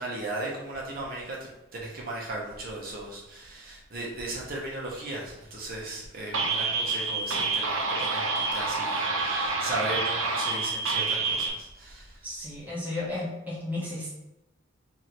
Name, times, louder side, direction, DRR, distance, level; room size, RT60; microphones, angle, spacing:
voice 1, 0.0-12.2, right 2 dB, 45° right, -4 dB, 0.9 m, -36 dB
sound 1, 6.3-11.5, right 3 dB, 80° right, 0.6 m, -28 dB
voice 2, 12.2-14.1, left 2 dB, 10° right, -6 dB, 1.0 m, -33 dB
3.2 x 2.7 x 4.2 m, 0.96 s
head